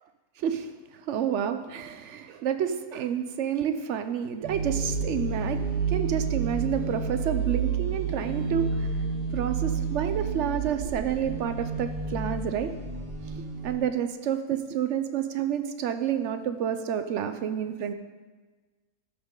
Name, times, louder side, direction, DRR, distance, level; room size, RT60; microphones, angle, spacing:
voice 1, 1.1-5.6 5.9-8.8 9.3-12.7 13.4-17.9, right 9 dB, 65° right, 9 dB, 0.7 m, -29 dB
sound 1, 4.4-13.8, right 5 dB, 90° right, 1.9 m, -30 dB
12.5 x 6.1 x 3.7 m, 1.3 s
omnidirectional pair, 1.6 m